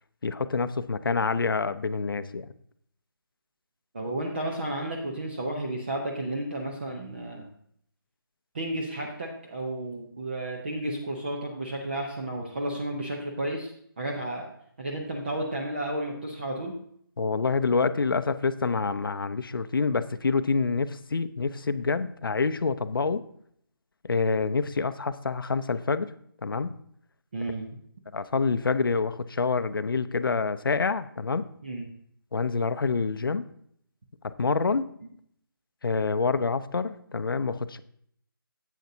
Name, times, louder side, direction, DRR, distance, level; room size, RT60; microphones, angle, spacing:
voice 1, 0.2-2.5 17.2-23.2 24.0-26.1 26.4-26.7 28.1-31.4 32.3-33.4 34.2-34.9 35.8-37.8, left 4 dB, 65° left, 13 dB, 0.6 m, -27 dB
voice 2, 3.9-7.5 8.5-13.7 14.0-14.5 14.8-16.7 27.3-27.7 31.6-31.9, right 1 dB, 30° right, 0 dB, 0.8 m, -32 dB
10.5 x 8.2 x 2.7 m, 0.67 s
figure-of-eight pair, 175°, 13 cm